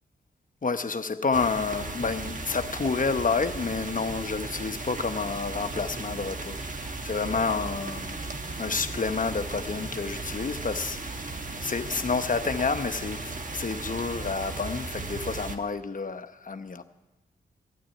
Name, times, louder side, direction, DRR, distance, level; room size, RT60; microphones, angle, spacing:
voice 1, 0.6-8.2 8.6-11.3 11.6-16.8, left 4 dB, 40° left, 0.9 m, -29 dB
sound 1, 1.3-15.6, right 3 dB, 40° right, 1.4 m, -36 dB
13.5 x 8.7 x 9.3 m
cardioid pair, 45°, 21 cm